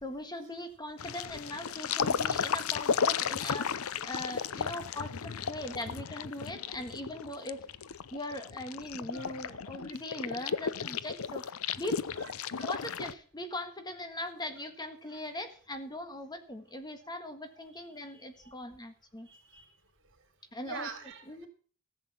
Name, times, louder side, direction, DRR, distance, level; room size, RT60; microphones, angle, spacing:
voice 1, 0.0-7.6 8.1-11.5 11.8-12.0 12.6-19.3 20.5-21.5, left 1 dB, 20° left, 8 dB, 1.5 m, -40 dB
sound 1, 1.0-13.1, left 6 dB, 70° left, 0.6 m, -34 dB
voice 2, 19.3-19.6 20.6-21.5, right 5 dB, 60° right, 6 dB, 3.2 m, -44 dB
15.0 x 8.0 x 7.2 m, 0.42 s
head